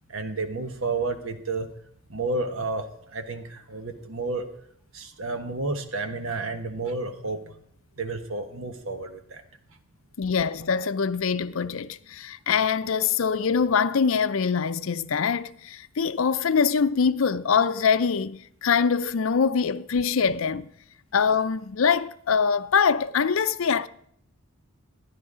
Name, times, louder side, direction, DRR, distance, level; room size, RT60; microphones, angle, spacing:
voice 1, 0.1-1.7 2.1-4.5 4.9-7.5 8.0-9.4, right 3 dB, 70° right, 1.3 m, -31 dB
voice 2, 10.2-20.7 21.1-23.9, left 6 dB, 70° left, 0.5 m, -24 dB
13.5 x 10.5 x 5.0 m
head